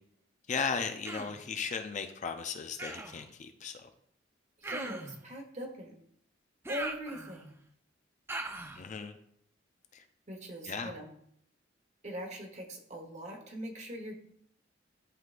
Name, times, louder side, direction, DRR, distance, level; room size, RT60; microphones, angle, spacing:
voice 1, 0.5-3.9 8.7-9.2 9.9-10.0 10.7-10.9, left 5 dB, 40° left, 7 dB, 0.5 m, -36 dB
Human voice, 1.0-1.4 2.8-3.2 4.6-5.2 6.6-7.5 8.3-8.8, right 2 dB, 15° right, 0.5 m, -40 dB
voice 2, 4.6-5.9 6.7-7.5 10.3-11.1 12.0-14.2, equal, 40° right, 3 dB, 1.2 m, -41 dB
11.0 x 3.8 x 2.5 m, 0.68 s
head